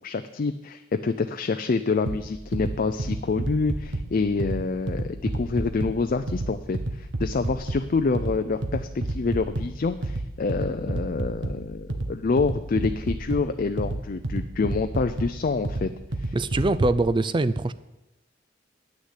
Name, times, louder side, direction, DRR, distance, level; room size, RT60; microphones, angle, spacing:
voice 1, 0.0-15.9 16.2-16.3, left 4 dB, 50° left, 8 dB, 0.4 m, -27 dB
sound 1, 2.1-17.1, right 2 dB, 85° right, 1.1 m, -31 dB
voice 2, 16.3-17.7, right 2 dB, 25° right, 14 dB, 0.4 m, -23 dB
9.5 x 6.5 x 8.2 m, 0.97 s
head